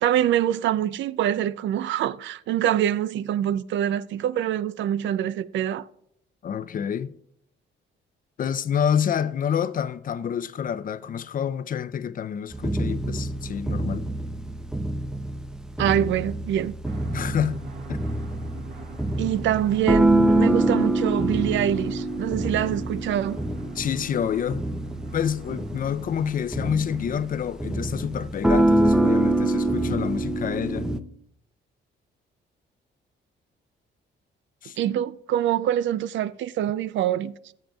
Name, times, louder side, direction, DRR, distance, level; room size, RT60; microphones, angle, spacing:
voice 1, 0.0-5.8 15.8-16.7 19.2-23.4 34.8-37.3, right 11 dB, 70° right, 0.4 m, -25 dB
voice 2, 6.4-7.1 8.4-14.1 17.1-17.6 17.9-18.0 22.6-22.8 23.7-24.6 25.1-30.9 34.6-34.8, left 8 dB, 45° left, 0.5 m, -28 dB
sound 1, 12.5-31.0, right 1 dB, 5° right, 0.5 m, -25 dB
sound 2, 16.8-28.0, right 4 dB, 55° right, 1.7 m, -44 dB
16.0 x 7.3 x 2.3 m
cardioid pair, 90°, 20 cm